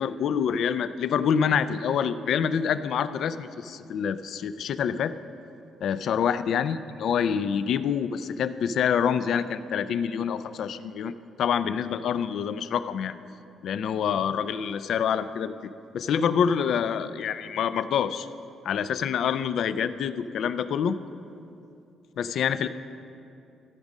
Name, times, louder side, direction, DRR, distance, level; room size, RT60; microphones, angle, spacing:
voice 1, 0.0-5.1 5.8-11.1 11.4-13.2 13.6-15.5 15.9-18.3 18.6-21.0 22.2-22.7, left 7 dB, 70° left, 13 dB, 0.4 m, -26 dB
14.0 x 5.3 x 6.1 m, 2.7 s
cardioid pair, 90°, 0 cm